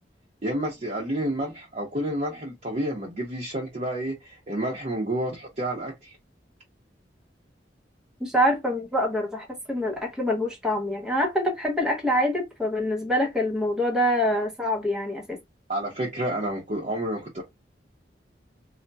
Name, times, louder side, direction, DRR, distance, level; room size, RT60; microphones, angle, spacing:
voice 1, 0.4-6.2 15.7-17.4, right 1 dB, 40° right, 0.8 m, -30 dB
voice 2, 8.2-15.4, equal, 5° right, 0.7 m, -25 dB
4.0 x 2.1 x 2.2 m
head